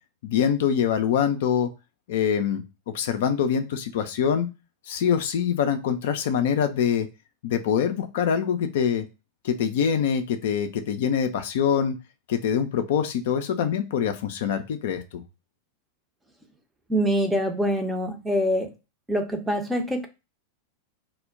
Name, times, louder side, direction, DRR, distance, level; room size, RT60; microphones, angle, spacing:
voice 1, 0.2-1.7 2.1-4.5 4.9-7.1 7.4-9.1 9.4-12.0 12.3-15.2, left 8 dB, 55° left, 0.4 m, -24 dB
voice 2, 16.9-18.7 19.1-20.1, equal, 10° right, 0.6 m, -25 dB
2.1 x 2.1 x 3.4 m
figure-of-eight pair, 90°, 0 cm